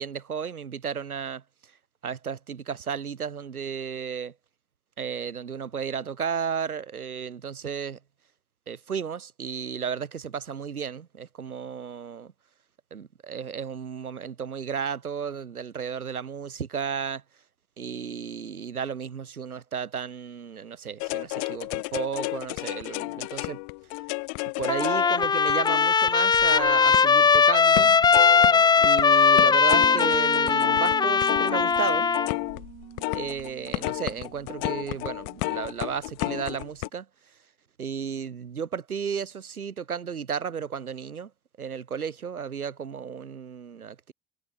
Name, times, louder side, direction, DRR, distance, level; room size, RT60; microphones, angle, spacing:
voice 1, 0.0-1.4 2.0-4.3 5.0-8.0 8.7-12.3 12.9-17.2 17.8-23.6 24.6-27.9 28.8-32.1 33.1-37.1 37.8-41.3 41.6-44.1, right 7 dB, 85° right, 2.1 m, -33 dB
sound 1, 21.0-27.4 27.7-29.0 29.4-36.9, left 40 dB or more, 60° left, 2.4 m, -32 dB
Trumpet, 24.7-32.3, left 5 dB, 10° left, 0.4 m, -20 dB
sound 2, 29.8-35.3, right 10 dB, 35° right, 3.0 m, -43 dB
figure-of-eight pair, 65°, 43 cm